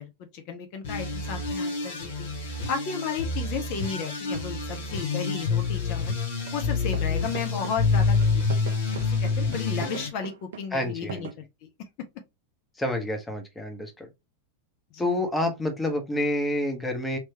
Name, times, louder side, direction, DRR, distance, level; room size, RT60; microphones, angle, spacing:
voice 1, 0.0-2.3 2.7-6.2 6.5-8.2 9.2-11.7 14.9-15.2, left 6 dB, 45° left, 0.7 m, -34 dB
sound 1, 0.8-10.1, left 4 dB, 60° left, 1.3 m, -27 dB
sound 2, 6.5-6.6 6.9-11.3, right 8 dB, 60° right, 0.5 m, -39 dB
voice 2, 10.7-11.3 12.8-14.1 15.0-17.2, left 1 dB, 10° left, 1.0 m, -28 dB
3.3 x 3.1 x 2.8 m
figure-of-eight pair, 90°, 0 cm